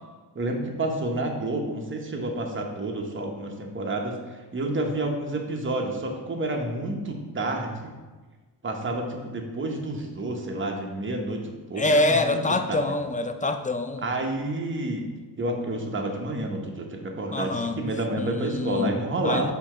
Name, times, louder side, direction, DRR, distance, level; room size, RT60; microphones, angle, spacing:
voice 1, 0.3-4.2 4.5-7.9 8.6-12.4 12.7-12.8 14.0-15.1 15.4-19.5, right 1 dB, 30° right, 2 dB, 1.0 m, -29 dB
voice 2, 11.8-14.0 17.3-17.8 18.2-19.0 19.2-19.5, left 2 dB, 20° left, 7 dB, 0.4 m, -25 dB
7.0 x 2.9 x 5.5 m, 1.3 s
cardioid pair, 85°, 42 cm